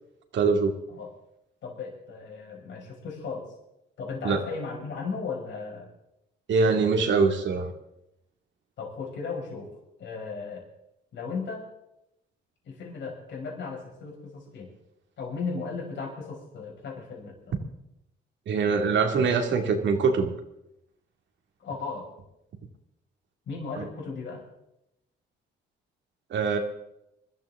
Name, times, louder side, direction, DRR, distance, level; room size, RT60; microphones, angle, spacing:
voice 1, 0.3-0.7 4.2-4.4 6.5-7.7 18.5-20.3 23.8-23.9 26.3-26.6, right 4 dB, 70° right, 5 dB, 2.4 m, -23 dB
voice 2, 1.6-3.5 4.0-5.9 8.8-9.7 10.0-10.6 11.1-11.7 12.6-14.7 15.2-17.5 21.6-22.1 23.5-24.4, left 4 dB, 70° left, -1 dB, 5.8 m, -36 dB
22.5 x 14.0 x 3.7 m, 0.84 s
cardioid pair, 80°, 20 cm